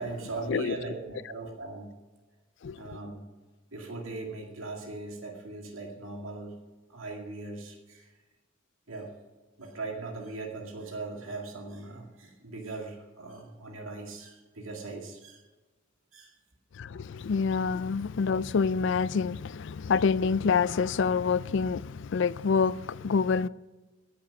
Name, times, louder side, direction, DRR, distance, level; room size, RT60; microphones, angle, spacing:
voice 1, 0.0-1.9 2.8-3.3 3.7-6.5 6.9-8.1 8.9-9.1 9.6-15.4 16.1-16.4, right 3 dB, 80° right, 2.2 m, -39 dB
voice 2, 16.8-23.5, left 5 dB, 60° left, 0.4 m, -27 dB
16.5 x 7.4 x 6.0 m
head